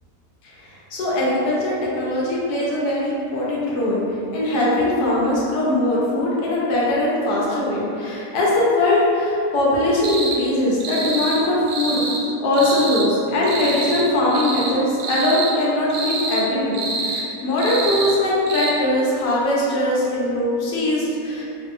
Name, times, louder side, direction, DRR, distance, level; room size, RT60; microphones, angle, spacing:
voice 1, 0.4-12.0 12.4-21.4, left 1 dB, 70° left, -6 dB, 1.2 m, -21 dB
sound 1, 10.0-10.4 10.8-11.4 11.7-12.2 12.5-13.1 13.4-14.0 14.3-14.7 15.0-15.5 15.9-16.4 16.7-17.2 17.6-18.1 18.5-18.7, right 3 dB, 75° right, 1.1 m, -26 dB
3.9 x 2.7 x 2.5 m, 2.7 s
omnidirectional pair, 1.8 m